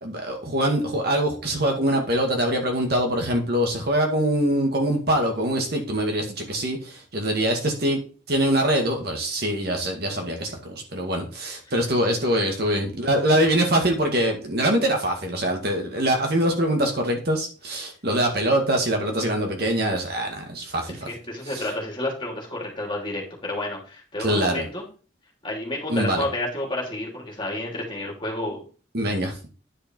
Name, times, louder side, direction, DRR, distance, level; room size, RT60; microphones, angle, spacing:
voice 1, 0.0-8.0 8.3-21.1 21.5-21.6 24.2-24.7 25.9-26.3 28.9-29.4, right 1 dB, 55° right, 2 dB, 2.0 m, -23 dB
voice 2, 21.1-24.8 25.4-28.6, left 1 dB, 25° left, -1 dB, 2.9 m, -30 dB
10.0 x 5.3 x 4.5 m, 0.37 s
head